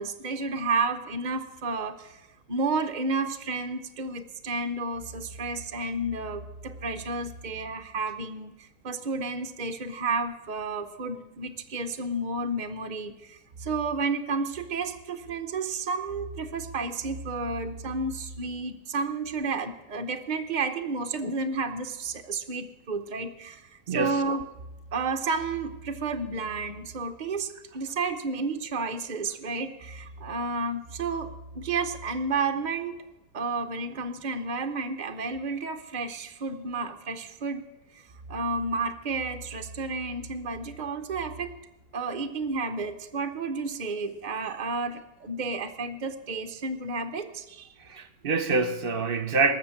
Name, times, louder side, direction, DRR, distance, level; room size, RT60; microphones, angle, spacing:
voice 1, 0.0-24.4 24.9-31.3 31.5-33.0 33.3-37.6 37.9-38.0 38.3-41.5 41.9-47.7, right 3 dB, 85° right, 0.4 m, -31 dB
voice 2, 23.9-24.2 47.8-49.5, right 3 dB, 45° right, 0.8 m, -26 dB
19.0 x 6.9 x 8.4 m
omnidirectional pair, 2.0 m